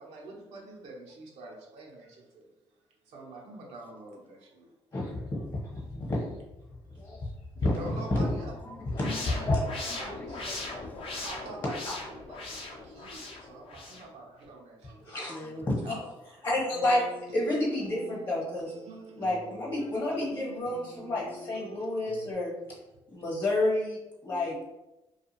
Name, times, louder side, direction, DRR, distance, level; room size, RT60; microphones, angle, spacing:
voice 1, 0.0-2.4 3.1-4.7 7.6-8.5 9.0-16.1 18.9-19.0 19.7-20.2 20.5-20.6, right 2 dB, 85° right, -2 dB, 0.7 m, -46 dB
voice 2, 4.9-6.2 7.0-7.2 7.6-7.7 8.1-8.3 9.0-9.6 9.9-10.0 11.9-12.0 15.0-15.4 15.7-15.9 16.4-17.1 17.3-18.7 19.2-22.5 23.1-24.5, left 1 dB, 40° left, -4 dB, 1.0 m, -30 dB
voice 3, 8.1-11.3 15.3-15.7 17.7-18.2 20.2-21.1 24.3-24.7, left 2 dB, 15° left, 5 dB, 0.3 m, -47 dB
sound 1, 8.9-14.1, left 2 dB, 55° left, 0.6 m, -39 dB
sound 2, 16.7-22.3, right 2 dB, 65° right, 0.4 m, -46 dB
2.4 x 2.3 x 3.0 m, 0.98 s
cardioid pair, 75°, 11 cm